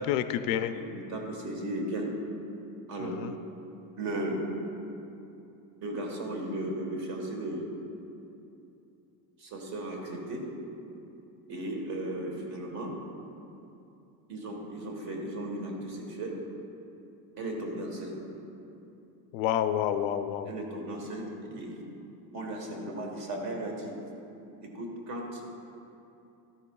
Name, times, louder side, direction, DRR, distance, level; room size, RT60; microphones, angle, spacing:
voice 1, 0.0-0.7 3.0-3.3 19.3-20.5, left 10 dB, 80° left, 10 dB, 0.6 m, -29 dB
voice 2, 0.7-2.1 2.9-3.2 4.0-4.5 5.8-7.7 9.4-10.5 11.5-12.9 14.3-16.4 17.4-18.2 20.4-21.2 21.5-21.8 22.3-23.9 24.6-25.4, right 1 dB, 40° right, 1 dB, 1.4 m, -35 dB
13.0 x 9.8 x 2.3 m, 2.8 s
cardioid pair, 175°, 41 cm